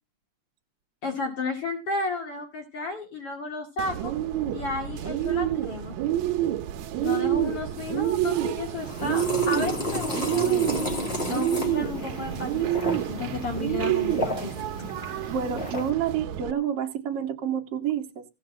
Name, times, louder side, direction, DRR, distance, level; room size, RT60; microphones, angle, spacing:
voice 1, 1.0-4.1 4.5-5.9 7.0-10.8 11.3-14.7, left 3 dB, 50° left, 3.1 m, -33 dB
Bird, 3.8-16.5, right 12 dB, 75° right, 2.1 m, -28 dB
sound 1, 8.8-15.9, left 1 dB, 20° left, 2.1 m, -33 dB
voice 2, 15.3-18.2, right 8 dB, 60° right, 2.0 m, -28 dB
16.0 x 6.0 x 7.6 m
omnidirectional pair, 3.4 m